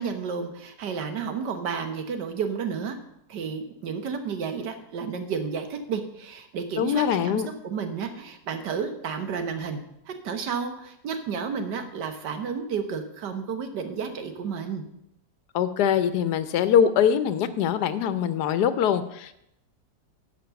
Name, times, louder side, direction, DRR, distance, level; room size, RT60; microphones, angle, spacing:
voice 1, 0.0-3.0 3.3-14.8, right 6 dB, 85° right, 7 dB, 1.7 m, -31 dB
voice 2, 6.8-7.5 15.5-19.3, left 8 dB, 75° left, 13 dB, 1.2 m, -23 dB
10.5 x 5.3 x 6.8 m, 0.80 s
omnidirectional pair, 1.8 m